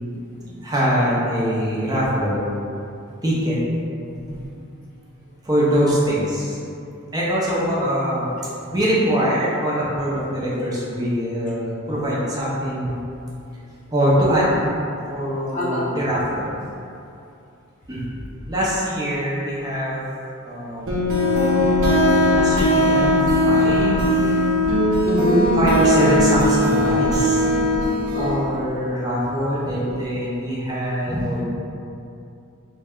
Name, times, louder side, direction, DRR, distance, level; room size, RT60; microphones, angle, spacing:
voice 1, 0.6-2.5 3.2-3.6 5.4-6.6 7.1-8.3 8.7-13.0 13.9-14.6 15.1-16.5 17.9-18.0 18.5-20.0 20.4-21.0 22.3-23.1 23.4-24.0 25.6-27.4 28.2-31.4, equal, 20° right, -7 dB, 0.6 m, -23 dB
voice 2, 15.5-15.9 25.1-25.5 28.1-28.4 31.1-31.4, equal, 35° left, -6 dB, 0.6 m, -23 dB
sound 1, 20.9-28.4, left 1 dB, 65° right, 0.7 m, -18 dB
3.5 x 2.2 x 3.5 m, 2.6 s
head